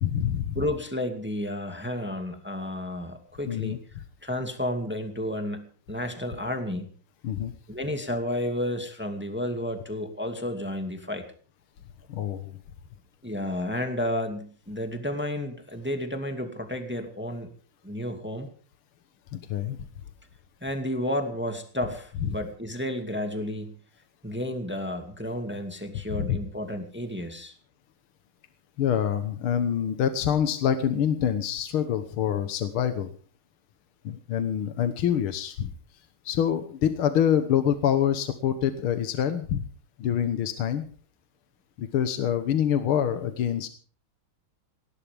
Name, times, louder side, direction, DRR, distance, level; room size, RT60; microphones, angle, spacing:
voice 1, 0.0-0.6 3.5-3.8 7.2-7.5 12.1-12.5 19.3-19.8 22.2-22.3 26.1-26.4 28.8-33.1 34.0-35.7 36.3-39.6 40.0-40.9 41.8-43.7, left 9 dB, 75° left, 9 dB, 2.0 m, -26 dB
voice 2, 0.5-3.8 4.2-6.9 7.7-11.2 13.2-17.5 17.8-18.5 20.6-23.7 24.2-27.6, left 1 dB, 5° right, 5 dB, 2.0 m, -31 dB
19.5 x 18.5 x 3.5 m, 0.43 s
omnidirectional pair, 2.4 m